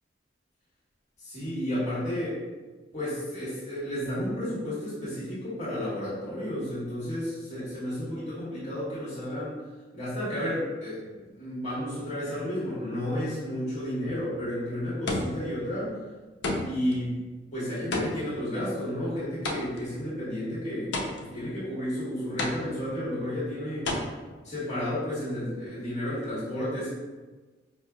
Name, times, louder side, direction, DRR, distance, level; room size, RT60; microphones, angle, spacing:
voice 1, 1.2-2.4 2.9-9.5 9.9-11.0 11.3-16.0 16.7-17.2 17.5-23.9 24.4-26.9, left 1 dB, 40° left, -11 dB, 1.4 m, -32 dB
sound 1, 14.4-14.5 15.1-15.6 16.4-17.0 17.9-20.0 20.9-21.5 22.4-23.0 23.9-24.0, left 2 dB, 65° left, 0.5 m, -32 dB
4.7 x 3.1 x 2.3 m, 1.3 s
head